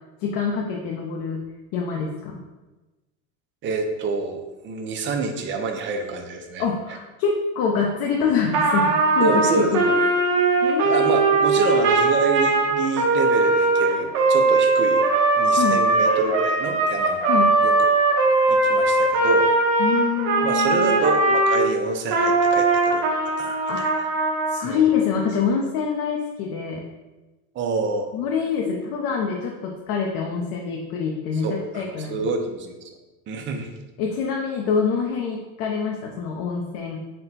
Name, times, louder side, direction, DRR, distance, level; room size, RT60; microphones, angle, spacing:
voice 1, 0.2-1.4 1.7-2.4 6.6-10.1 10.6-11.5 15.5-15.8 17.3-17.6 19.8-21.0 23.7-23.9 24.5-26.8 28.1-32.2 34.0-37.0, left 6 dB, 55° left, 0 dB, 0.6 m, -25 dB
voice 2, 3.6-6.6 9.2-9.9 10.8-15.0 15.4-17.3 17.6-17.9 18.5-19.5 20.4-23.1 23.4-24.1 24.6-24.9 27.5-28.1 31.4-32.8 33.3-33.7, right 3 dB, 30° right, 4 dB, 0.5 m, -27 dB
Trumpet, 8.5-21.6 22.1-24.6, right 3 dB, 50° right, 0.8 m, -20 dB
4.3 x 2.1 x 4.0 m, 1.1 s
supercardioid pair, 120°, 41 cm